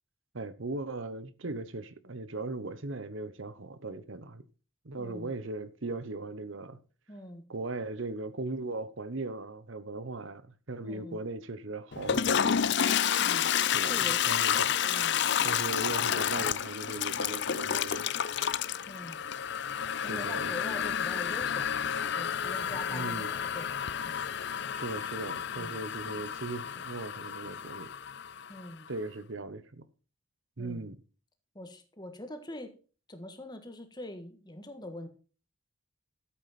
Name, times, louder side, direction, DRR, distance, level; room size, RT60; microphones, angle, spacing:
voice 1, 0.3-4.4 4.8-6.8 7.5-12.6 13.7-14.0 14.3-14.7 15.4-18.1 20.0-20.5 22.9-23.3 24.7-27.9 28.9-29.9 30.6-31.0, right 2 dB, 65° right, 1.0 m, -38 dB
voice 2, 5.0-5.3 7.1-7.4 10.8-11.2 13.2-13.5 13.9-14.2 14.8-15.6 18.9-19.2 20.0-24.3 25.5-25.8 28.5-28.9 30.6-30.9 31.5-32.7 33.1-35.1, left 1 dB, 20° left, 1.6 m, -44 dB
Toilet flush, 11.9-28.7, left 8 dB, 55° left, 0.5 m, -30 dB
13.0 x 8.3 x 4.3 m
head